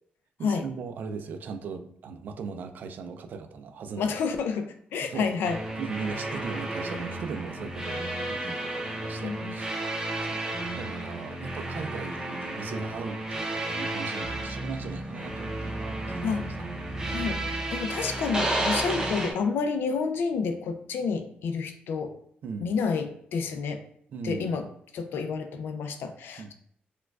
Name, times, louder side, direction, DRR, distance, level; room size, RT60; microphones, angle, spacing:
voice 1, 0.4-4.1 5.0-5.3 5.8-9.7 10.0-16.4 22.4-22.7 24.1-24.6 26.4-26.5, right 5 dB, 55° right, 8 dB, 0.3 m, -38 dB
voice 2, 4.0-5.6 9.2-9.5 16.2-16.5 17.1-22.2 22.6-23.8 24.2-24.6 24.9-26.5, left 5 dB, 85° left, 7 dB, 0.4 m, -29 dB
sound 1, 5.4-19.3, right 1 dB, 15° right, 0.6 m, -32 dB
4.5 x 2.2 x 2.3 m, 0.68 s
wide cardioid pair, 150°, 4 cm